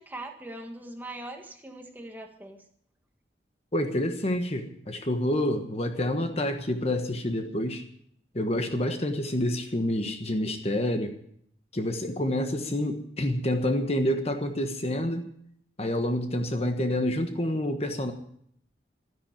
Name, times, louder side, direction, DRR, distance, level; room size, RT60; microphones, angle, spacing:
voice 1, 0.0-2.6, right 1 dB, 10° right, 3 dB, 1.6 m, -41 dB
voice 2, 3.7-7.8 8.3-11.1 11.7-15.3 15.8-18.1, left 1 dB, 35° left, 6 dB, 1.3 m, -28 dB
13.0 x 10.5 x 8.9 m, 0.67 s
head